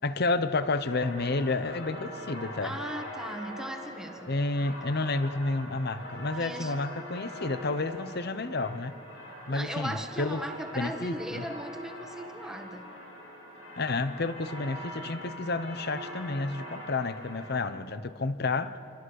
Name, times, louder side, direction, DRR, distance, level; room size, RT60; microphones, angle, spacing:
voice 1, 0.0-2.8 4.3-9.0 9.5-10.4 10.7-11.4 13.8-18.8, left 3 dB, 50° left, 0.9 m, -30 dB
sound 1, 0.8-17.6, equal, 85° left, 7.4 m, -43 dB
voice 2, 2.6-4.3 4.6-4.7 6.3-6.7 9.5-12.9, right 1 dB, 5° right, 1.6 m, -38 dB
27.5 x 24.5 x 6.6 m
head